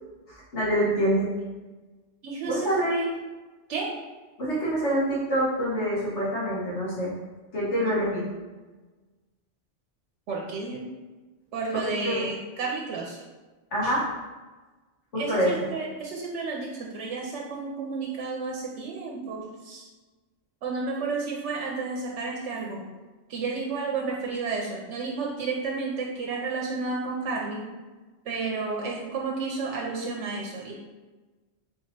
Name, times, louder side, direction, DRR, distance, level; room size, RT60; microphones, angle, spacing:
voice 1, 0.3-1.3 2.5-3.1 4.4-7.1 7.5-8.2 11.7-12.2 13.7-14.0 15.1-15.7, equal, 75° left, -7 dB, 1.9 m, -26 dB
voice 2, 2.2-3.1 3.7-4.0 10.3-10.9 11.5-13.2 13.8-14.0 15.2-19.9 20.6-22.9 23.3-27.7 28.2-30.7, right 4 dB, 85° right, -1 dB, 1.0 m, -32 dB
3.8 x 2.9 x 4.3 m, 1.2 s
omnidirectional pair, 1.2 m